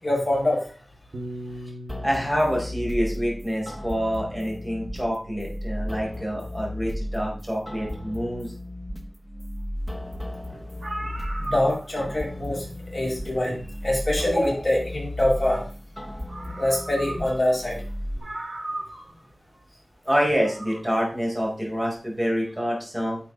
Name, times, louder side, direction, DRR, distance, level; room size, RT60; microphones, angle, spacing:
voice 1, 0.0-0.7 10.5-10.6 11.0-11.1 11.4-12.6 12.9-15.7 16.6-17.8, left 1 dB, 30° left, -4 dB, 5.8 m, -24 dB
Piano, 1.1-5.6, equal, 85° right, 1.5 m, -42 dB
sound 1, 1.9-18.2, left 1 dB, ahead, 1.5 m, -35 dB
voice 2, 2.0-8.5 20.0-23.2, equal, 15° right, -2 dB, 4.7 m, -26 dB
sound 2, 10.4-10.5 10.7-12.1 13.5-13.6 15.8-15.9 16.3-17.5 17.8-17.9 18.2-19.2 20.2-20.8, right 1 dB, 65° right, 3.6 m, -36 dB
10.5 x 7.1 x 3.9 m, 0.39 s
wide cardioid pair, 75°, 0 cm